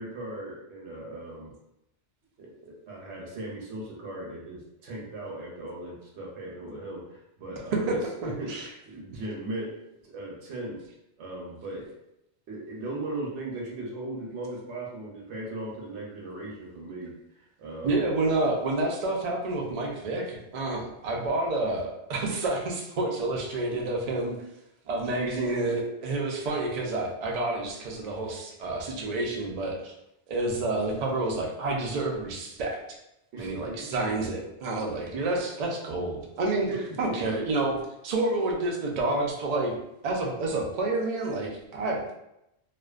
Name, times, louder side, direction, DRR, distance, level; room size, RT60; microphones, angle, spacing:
voice 1, 0.0-1.5 2.4-9.7 10.0-10.8 11.2-11.9 12.5-18.1 33.3-33.9 36.7-37.4, right 2 dB, 75° right, -2 dB, 0.9 m, -38 dB
voice 2, 8.2-8.7 17.8-24.3 24.9-29.9 30.3-32.8 33.4-37.7 38.0-39.7 40.0-42.1, right 2 dB, 60° right, -1 dB, 0.4 m, -29 dB
2.4 x 2.2 x 2.3 m, 0.85 s
omnidirectional pair, 1.2 m